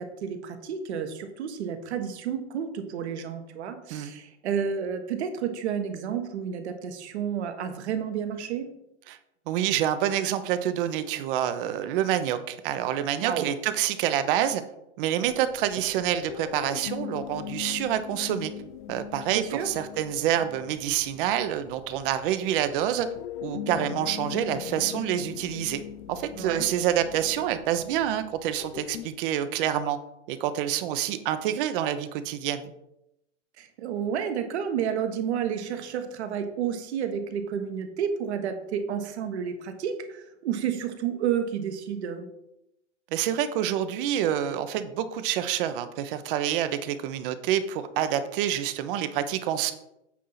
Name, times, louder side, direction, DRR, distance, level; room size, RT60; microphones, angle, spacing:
voice 1, 0.0-8.7 13.2-13.5 19.3-19.7 26.3-26.7 33.6-42.3, right 8 dB, 65° right, 7 dB, 1.4 m, -31 dB
voice 2, 9.5-14.6 15.0-18.5 18.9-23.1 23.4-25.8 26.1-30.0 30.3-32.7 43.1-49.7, right 10 dB, 45° right, 11 dB, 0.9 m, -27 dB
sound 1, 15.2-29.1, left 11 dB, 45° left, 0.4 m, -40 dB
8.4 x 3.7 x 5.8 m, 0.85 s
hypercardioid pair, 115°, 36 cm